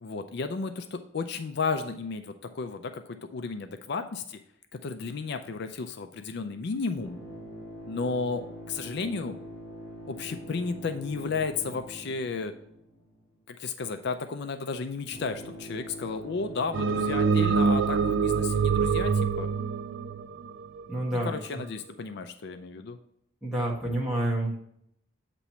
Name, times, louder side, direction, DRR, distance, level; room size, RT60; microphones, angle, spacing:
voice 1, 0.0-3.0 3.3-4.4 4.8-7.2 7.9-9.4 10.1-12.5 13.5-19.1 19.4-19.5 21.2-23.0, left 4 dB, 60° left, 8 dB, 0.4 m, -33 dB
sound 1, 7.0-13.3 15.1-18.5, equal, 15° left, 1.6 m, -44 dB
sound 2, 16.7-21.1, right 5 dB, 75° right, 0.4 m, -25 dB
voice 2, 20.9-21.4 23.4-24.6, right 1 dB, 5° right, -4 dB, 1.6 m, -28 dB
8.2 x 3.0 x 5.5 m, 0.72 s
head